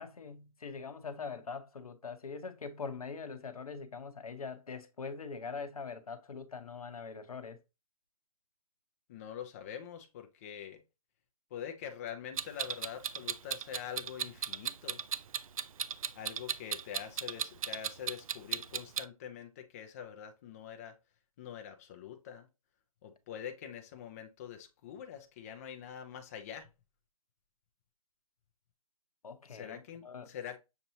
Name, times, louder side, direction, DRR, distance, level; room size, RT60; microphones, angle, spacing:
voice 1, 0.0-7.6 29.2-30.3, left 5 dB, 80° left, 0.9 m, -43 dB
voice 2, 9.1-10.8 11.5-15.0 16.1-21.0 21.4-22.5 23.0-26.7 29.5-30.6, left 9 dB, 25° left, 0.6 m, -45 dB
Clock, 12.4-19.1, right 7 dB, 70° right, 0.4 m, -36 dB
6.7 x 2.9 x 2.8 m
hypercardioid pair, 150°, 18 cm